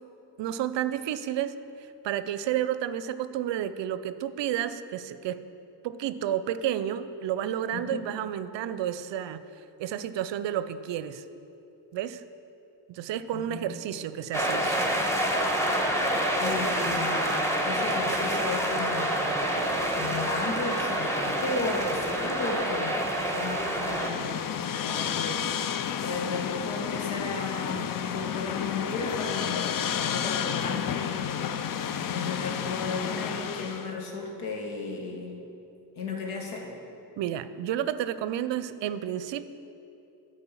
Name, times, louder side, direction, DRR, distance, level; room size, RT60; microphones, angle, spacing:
voice 1, 0.4-1.6 2.0-5.4 5.8-9.4 9.8-11.2 11.9-12.2 12.9-14.9 37.2-39.5, right 10 dB, 60° right, 13 dB, 0.6 m, -31 dB
voice 2, 7.7-8.0 13.3-13.6 16.4-19.4 19.9-29.7 30.0-35.4 36.0-36.7, left 3 dB, 80° left, 1 dB, 1.7 m, -34 dB
sound 1, 14.3-24.1, right 1 dB, 5° left, 1.5 m, -27 dB
sound 2, 23.8-33.9, left 9 dB, 45° left, 0.5 m, -31 dB
9.7 x 5.3 x 7.4 m, 2.8 s
supercardioid pair, 55°, 49 cm